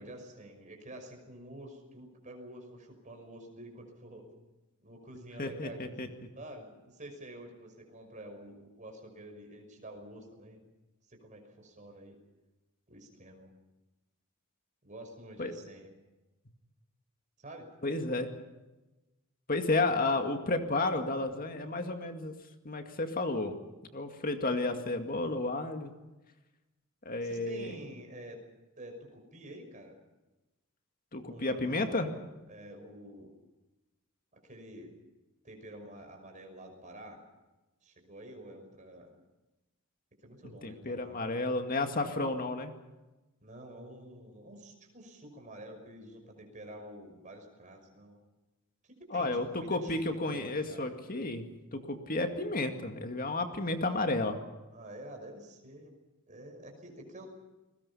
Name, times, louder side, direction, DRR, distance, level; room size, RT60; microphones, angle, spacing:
voice 1, 0.0-4.3 4.8-10.6 11.1-12.2 12.9-13.5 14.8-15.9 17.4-17.7 27.2-28.4 28.8-30.0 31.3-32.0 32.5-33.3 34.4-34.9 35.4-37.2 37.8-39.1 40.2-41.5 42.2-42.3 43.4-48.2 48.8-50.0 50.3-51.0 54.7-55.9 56.3-57.4, right 1 dB, 35° right, 3 dB, 5.9 m, -48 dB
voice 2, 5.4-6.1 15.4-15.5 17.8-18.3 19.5-22.3 22.6-23.6 23.9-25.9 27.0-27.7 31.1-32.1 40.6-42.7 49.1-51.5 51.7-54.4, left 2 dB, 40° left, 6 dB, 2.2 m, -32 dB
29.5 x 21.0 x 5.7 m, 1.1 s
head